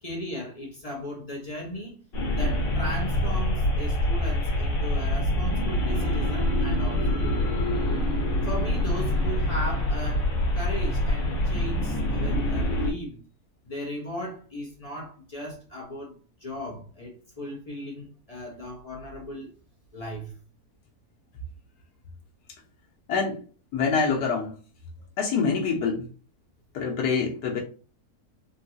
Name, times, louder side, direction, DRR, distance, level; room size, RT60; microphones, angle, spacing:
voice 1, 0.0-2.0 2.3-7.5 8.4-13.2 13.7-17.1 17.4-19.5 19.9-20.3, equal, 35° left, 0.7 m, -37 dB
sound 1, 2.1-12.9, left 1 dB, 50° left, 1.3 m, -25 dB
voice 2, 23.7-24.5 25.2-26.0 26.7-27.6, left 5 dB, 90° left, 1.3 m, -25 dB
3.8 x 2.3 x 2.6 m
omnidirectional pair, 1.7 m